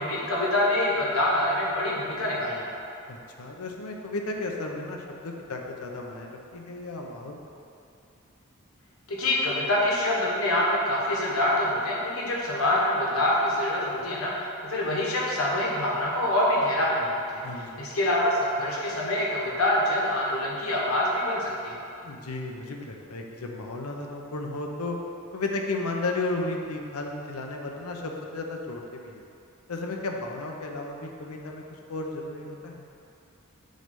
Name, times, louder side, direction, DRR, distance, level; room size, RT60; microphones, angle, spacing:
voice 1, 0.0-2.6 9.1-14.3 14.6-21.8, left 1 dB, 70° left, -4 dB, 1.4 m, -25 dB
voice 2, 3.1-7.4 17.4-17.9 22.0-25.0 25.3-29.2 29.7-31.6 31.9-32.9, left 2 dB, 85° left, 1 dB, 0.8 m, -34 dB
7.7 x 3.2 x 5.3 m, 2.6 s
head